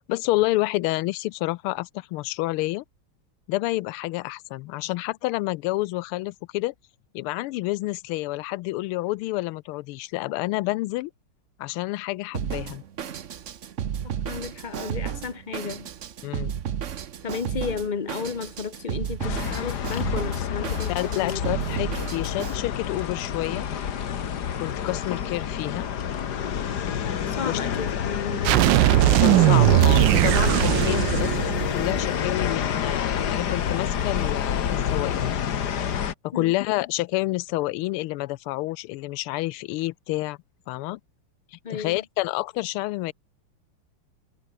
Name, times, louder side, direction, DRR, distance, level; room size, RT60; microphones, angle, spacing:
voice 1, 0.1-2.8 3.5-6.7 7.1-11.1 11.6-12.8 16.2-16.5 20.9-23.7 24.6-25.9 27.4-27.6 29.2-31.3 31.7-35.4 36.2-40.4 40.7-41.0 41.5-43.1, left 19 dB, 85° left, 1.5 m, -28 dB
Drum kit, 12.3-22.6, right 9 dB, 50° right, 0.9 m, -33 dB
voice 2, 14.2-15.9 17.2-21.4 27.3-28.8 36.3-36.5 41.6-42.0, left 6 dB, 35° left, 0.8 m, -33 dB
sound 1, 19.2-36.1, left 8 dB, 55° left, 1.8 m, -28 dB
sound 2, 28.5-32.2, right 17 dB, 75° right, 1.1 m, -19 dB
omnidirectional pair, 2.4 m